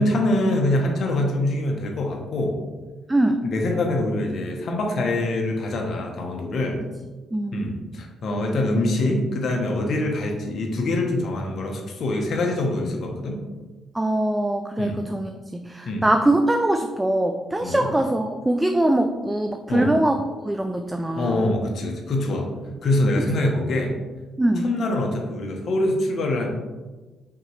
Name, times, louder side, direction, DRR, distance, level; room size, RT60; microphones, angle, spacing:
voice 1, 0.0-2.6 3.4-6.8 7.5-13.4 14.8-15.0 15.9-16.0 17.6-17.9 19.7-19.9 21.1-22.5 22.8-23.9 24.6-26.5, left 1 dB, 60° left, 1 dB, 0.9 m, -24 dB
voice 2, 7.3-7.7 13.9-21.5 24.4-24.7, right 1 dB, 10° right, 5 dB, 0.3 m, -22 dB
5.7 x 2.9 x 3.2 m, 1.2 s
cardioid pair, 90°, 0 cm